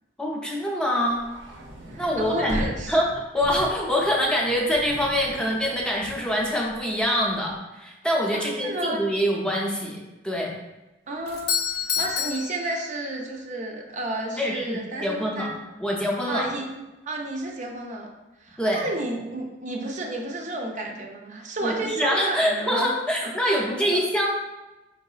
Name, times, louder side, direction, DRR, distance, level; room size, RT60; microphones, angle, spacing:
voice 1, 0.2-1.2 2.0-2.6 2.9-3.1 3.3-10.0 10.2-10.5 14.4-15.5 15.8-16.5 18.6-18.8 21.6-24.3, equal, 5° left, -2 dB, 0.5 m, -25 dB
sound 1, 1.1-7.4, right 1 dB, 85° right, 0.6 m, -38 dB
voice 2, 1.9-2.9 8.3-9.0 11.1-11.5 12.0-15.5 16.3-16.6 17.0-18.1 18.4-22.9 23.4-23.6, right 2 dB, 40° right, 1 dB, 0.5 m, -31 dB
Doorbell, 11.3-13.4, left 7 dB, 55° left, 0.5 m, -29 dB
4.6 x 3.7 x 2.4 m, 1.0 s
head